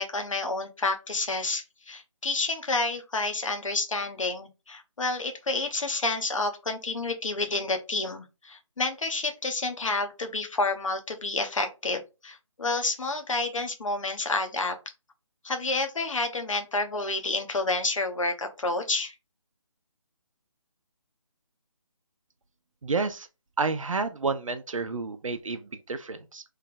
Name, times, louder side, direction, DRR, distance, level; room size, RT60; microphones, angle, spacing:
voice 1, 0.0-14.8 15.4-19.1, left 3 dB, 75° left, 0.9 m, -29 dB
voice 2, 22.8-23.3 23.6-26.4, right 4 dB, 80° right, 0.5 m, -30 dB
3.2 x 2.3 x 3.7 m
figure-of-eight pair, 155°, 17 cm